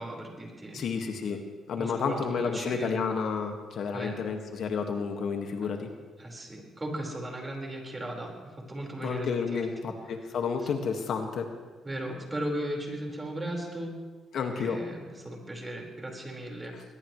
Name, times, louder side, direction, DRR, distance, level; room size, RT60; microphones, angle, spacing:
voice 1, 0.0-0.8 1.8-3.0 3.9-4.2 5.6-5.7 6.2-9.7 11.8-13.9 14.5-16.8, right 1 dB, 20° right, 0 dB, 4.7 m, -37 dB
voice 2, 0.7-1.4 1.7-5.9 9.0-11.5 14.3-14.8 16.7-16.8, left 5 dB, 65° left, 4 dB, 1.7 m, -31 dB
21.5 x 20.5 x 3.2 m, 1.4 s
cardioid pair, 90°, 0 cm